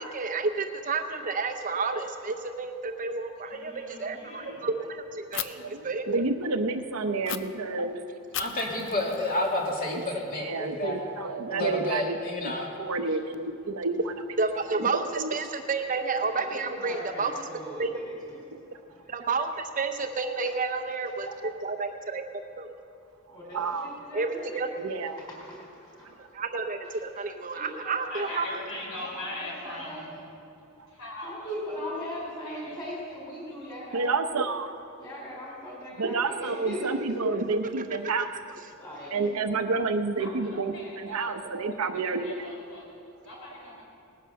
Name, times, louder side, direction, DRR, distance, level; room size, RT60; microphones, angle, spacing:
voice 1, 0.0-3.7 4.0-6.0 14.4-17.3 17.8-17.9 19.1-22.2 22.6-22.7 24.1-24.7 26.3-28.4 37.3-37.4, right 4 dB, 35° right, 6 dB, 0.7 m, -30 dB
voice 2, 3.4-4.7 26.9-27.0 28.1-30.1 30.9-31.6 32.0-32.2 32.4-32.8 40.2-41.4 41.9-43.8, left 1 dB, 75° left, -3 dB, 4.7 m, -41 dB
Fire, 5.3-5.5 7.2-7.4 8.3-10.3, left 10 dB, 55° left, 0.6 m, -37 dB
voice 3, 6.1-8.0 9.9-10.0 10.4-12.2 12.6-14.1 14.7-15.3 23.5-23.9 24.8-25.2 33.9-34.7 36.0-38.3 39.1-40.7 41.0-42.3, right 3 dB, 80° right, 7 dB, 0.8 m, -29 dB
voice 4, 8.4-11.0 11.5-12.7, left 1 dB, 40° left, -1 dB, 2.3 m, -30 dB
voice 5, 16.2-19.1 20.4-20.5 21.1-21.2 23.3-24.6 25.2-26.2 27.5-28.6 29.0-30.1 31.2-34.1 35.0-37.5 38.7-39.3, equal, 20° left, -3 dB, 4.4 m, -40 dB
18.5 x 10.0 x 6.5 m, 2.5 s
head